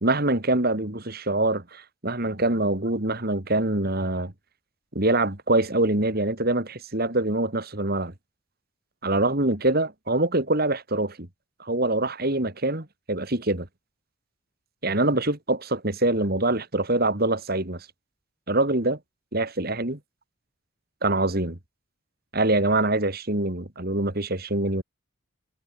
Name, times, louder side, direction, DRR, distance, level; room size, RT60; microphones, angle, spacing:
voice 1, 0.0-4.3 4.9-8.1 9.0-11.3 11.6-13.7 14.8-17.9 18.5-19.0 19.3-20.0 21.0-21.6 22.3-24.8, right 2 dB, 45° right, 2.5 m, -24 dB
head